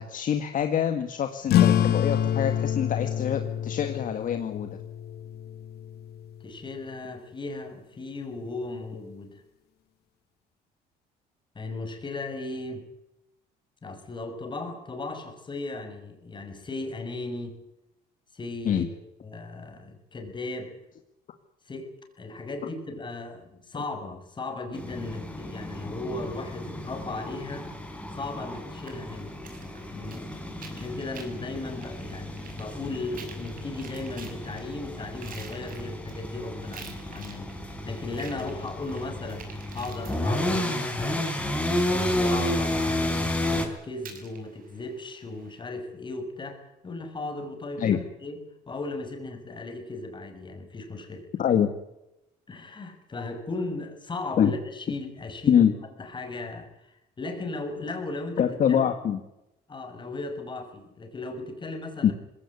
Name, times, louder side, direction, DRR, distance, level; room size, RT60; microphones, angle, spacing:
voice 1, 0.0-4.8 18.7-18.9 47.8-48.0 51.4-51.7 54.4-54.5 55.5-55.7 58.4-59.2 62.0-62.1, left 9 dB, 50° left, 7 dB, 1.9 m, -25 dB
sound 1, 1.5-6.5, left 10 dB, 70° left, 1.7 m, -26 dB
voice 2, 6.4-9.4 11.5-12.9 13.8-17.6 18.3-20.8 21.7-21.9 22.2-27.7 28.2-29.4 29.9-30.5 30.7-41.4 41.9-48.4 48.7-51.2 52.5-55.7 56.0-58.9 59.7-62.1, left 2 dB, 30° left, 5 dB, 6.0 m, -36 dB
sound 2, 24.7-43.7, left 1 dB, 5° left, 4.7 m, -32 dB
sound 3, 28.9-45.6, right 5 dB, 55° right, 6.2 m, -50 dB
20.5 x 17.5 x 9.7 m, 0.87 s
cardioid pair, 110°, 17 cm